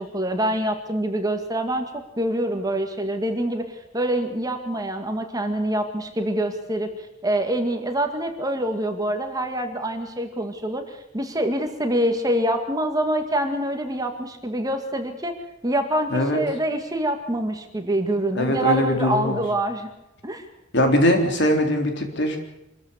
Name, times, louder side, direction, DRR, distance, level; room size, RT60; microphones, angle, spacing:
voice 1, 0.0-6.9 7.2-15.4 15.6-19.9 20.2-20.5, right 1 dB, 20° right, 5 dB, 2.0 m, -25 dB
voice 2, 16.1-16.4 18.3-19.4 20.7-22.4, left 1 dB, 60° left, 4 dB, 3.7 m, -21 dB
26.0 x 14.0 x 8.2 m, 0.92 s
head